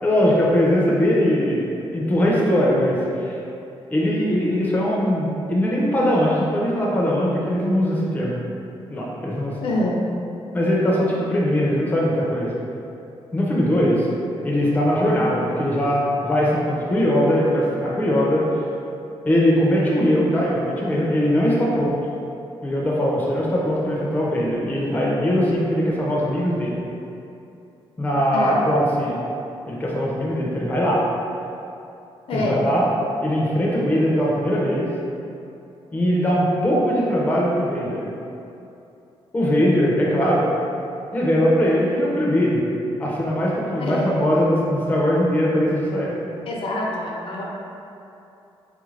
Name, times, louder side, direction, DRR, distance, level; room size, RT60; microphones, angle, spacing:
voice 1, 0.0-3.3 3.9-8.4 8.9-9.5 10.5-12.5 13.3-14.1 14.4-18.6 19.2-22.0 22.6-26.8 28.0-29.2 29.7-31.0 32.3-32.9 33.2-34.9 35.9-38.0 39.3-40.5 41.1-42.6 43.0-46.1, equal, 15° left, -5 dB, 0.5 m, -20 dB
voice 2, 9.6-10.0 28.3-28.6 32.3-32.6 43.8-44.2 46.5-47.4, left 1 dB, 65° left, -3 dB, 0.6 m, -25 dB
3.3 x 2.4 x 3.2 m, 2.7 s
wide cardioid pair, 145°, 10 cm